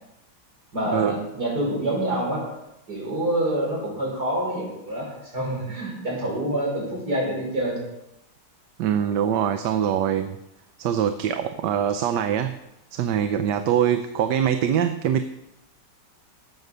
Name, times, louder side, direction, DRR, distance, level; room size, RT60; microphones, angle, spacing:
voice 1, 0.7-2.4 2.9-7.8, right 1 dB, 65° right, -4 dB, 5.9 m, -27 dB
voice 2, 8.8-10.4 10.8-12.6 12.9-15.2, right 9 dB, 80° right, 9 dB, 1.3 m, -23 dB
12.5 x 7.9 x 6.7 m, 0.89 s
omnidirectional pair, 1.9 m